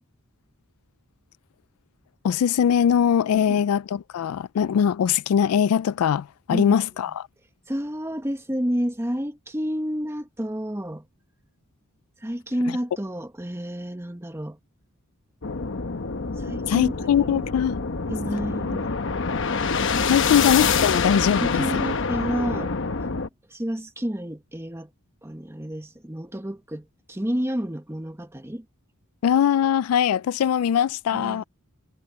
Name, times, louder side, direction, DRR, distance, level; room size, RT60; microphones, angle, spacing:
voice 1, 2.2-7.3 16.7-17.8 18.3-18.4 20.1-21.8 29.2-31.4, left 8 dB, 80° left, 0.3 m, -21 dB
voice 2, 7.7-11.0 12.2-14.6 16.4-17.5 18.1-18.9 21.3-22.7 23.5-24.9 25.2-28.6 31.1-31.4, equal, 10° right, 1.4 m, -30 dB
sound 1, 15.4-23.3, left 5 dB, 60° left, 1.0 m, -26 dB
head